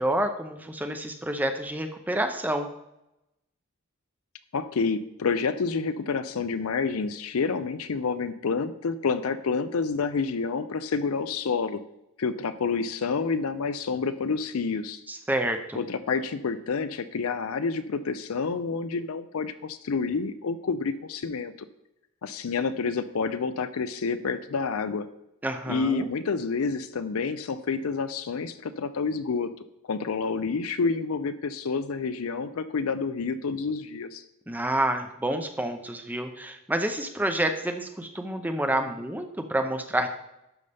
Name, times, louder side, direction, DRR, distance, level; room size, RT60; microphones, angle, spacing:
voice 1, 0.0-2.7 15.1-15.8 25.4-26.1 34.5-40.1, right 1 dB, 10° right, 6 dB, 0.5 m, -28 dB
voice 2, 4.5-11.8 12.2-15.0 15.7-21.7 22.2-25.1 25.7-29.5 29.9-34.2, left 4 dB, 75° left, 12 dB, 0.5 m, -28 dB
12.0 x 5.4 x 3.4 m, 0.88 s
head